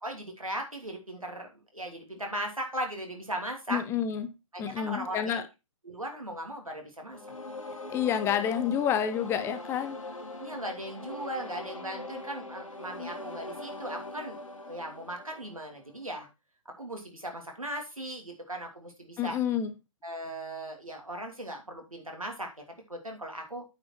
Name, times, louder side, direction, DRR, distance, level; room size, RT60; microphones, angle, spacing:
voice 1, 0.0-3.8 4.5-5.4 5.8-7.2 10.4-16.3 16.8-19.4 20.0-22.5 22.9-23.6, right 1 dB, 90° right, 2.9 m, -38 dB
voice 2, 3.7-4.3 4.6-5.4 7.9-10.0 19.2-19.7, left 9 dB, 15° left, 0.6 m, -29 dB
sound 1, 7.1-16.0, left 2 dB, 75° left, 2.6 m, -41 dB
8.8 x 5.5 x 4.5 m
figure-of-eight pair, 130°, 17 cm